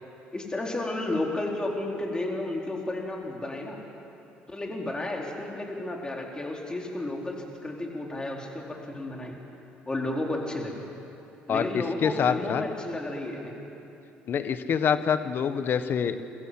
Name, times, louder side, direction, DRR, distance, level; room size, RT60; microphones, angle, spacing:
voice 1, 0.3-3.8 4.5-9.4 9.9-10.7 11.5-13.6, left 2 dB, 20° left, -1 dB, 4.4 m, -32 dB
voice 2, 11.5-12.6 14.3-16.2, left 7 dB, 55° left, 10 dB, 1.4 m, -26 dB
23.0 x 15.0 x 7.8 m, 2.9 s
supercardioid pair, 70°, 4 cm